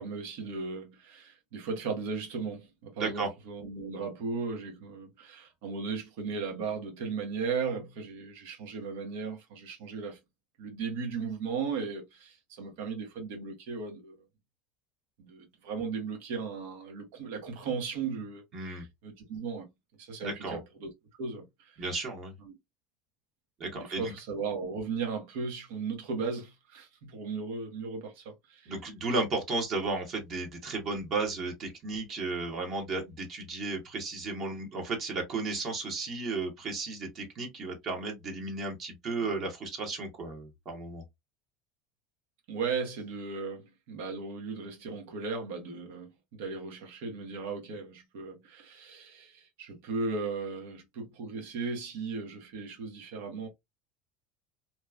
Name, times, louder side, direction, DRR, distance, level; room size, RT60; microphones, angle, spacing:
voice 1, 0.0-10.2 10.6-14.2 15.2-19.7 20.0-20.9 21.2-21.8 22.4-22.5 23.7-28.7 42.5-53.5, right 5 dB, 75° right, 1.1 m, -36 dB
voice 2, 18.5-18.8 20.2-20.6 21.8-22.3 23.6-24.0 28.7-41.0, right 3 dB, 45° right, 1.1 m, -34 dB
2.9 x 2.3 x 2.3 m
supercardioid pair, 105°, 0 cm